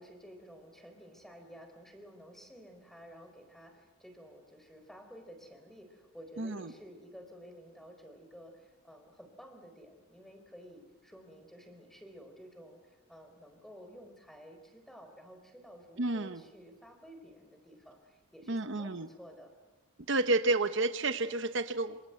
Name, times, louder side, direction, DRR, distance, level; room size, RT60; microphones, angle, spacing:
voice 1, 0.0-19.5, equal, ahead, 6 dB, 4.0 m, -52 dB
voice 2, 6.4-6.7 16.0-16.4 18.5-19.1 20.1-22.1, right 2 dB, 60° right, 10 dB, 1.0 m, -30 dB
27.0 x 26.5 x 7.9 m, 1.1 s
head